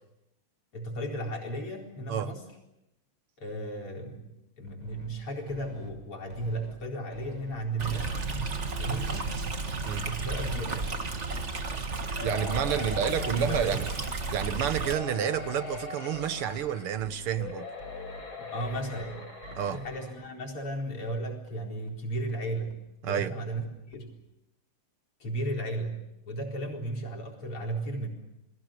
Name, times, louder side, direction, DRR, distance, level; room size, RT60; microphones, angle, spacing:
voice 1, 0.7-2.5 3.4-8.1 8.8-9.4 9.9-11.0 12.7-13.9 18.4-19.3 19.7-24.2 25.2-28.1, right 1 dB, 90° left, 1 dB, 5.3 m, -35 dB
sound 1, 4.7-5.1 5.5-5.9 6.3-6.7 7.1-7.5 7.9-8.4 8.8-9.2 9.6-10.0 10.4-10.8 11.2-11.6 12.0-12.5 12.9-13.3 13.7-14.1 14.5-14.9 15.3-15.8 16.1-16.6 17.0-17.4 17.8-18.2 18.6-19.0 19.4-19.8 20.2-20.3 20.7-20.8 21.1-21.2 21.5-21.6 21.9-22.0 22.3-22.4 22.7-22.8 23.1-23.2 23.5-23.6 23.9-24.0, left 1 dB, 65° right, 4.8 m, -46 dB
Stream, 7.8-14.9, right 3 dB, 35° right, 1.8 m, -33 dB
sound 2, 12.2-14.3 14.8-17.0 17.4-20.2 20.8-20.9 21.2-21.3, left 5 dB, 70° left, 5.6 m, -41 dB
voice 2, 12.2-13.9 14.3-17.7 19.5-19.8 23.0-23.4, right 9 dB, 85° right, 12 dB, 2.1 m, -30 dB
30.0 x 21.5 x 6.7 m, 0.87 s
omnidirectional pair, 2.4 m